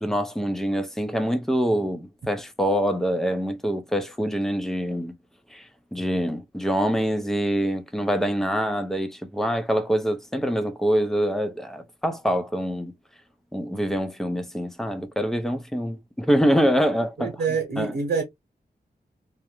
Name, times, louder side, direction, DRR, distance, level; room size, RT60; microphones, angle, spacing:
voice 1, 0.0-5.1 5.5-5.6 5.9-12.9 13.5-17.3 17.8-17.9, equal, ahead, 0.4 m, -25 dB
voice 2, 17.2-18.2, right 5 dB, 70° right, 0.9 m, -27 dB
2.3 x 2.0 x 2.9 m
wide cardioid pair, 120°, 17 cm